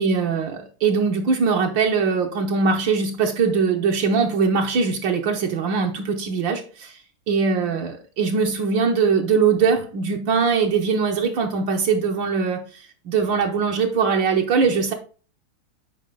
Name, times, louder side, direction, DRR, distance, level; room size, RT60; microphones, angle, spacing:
voice 1, 0.0-7.0 7.3-14.9, right 5 dB, 70° right, 1.6 m, -21 dB
8.9 x 4.4 x 3.7 m
omnidirectional pair, 2.3 m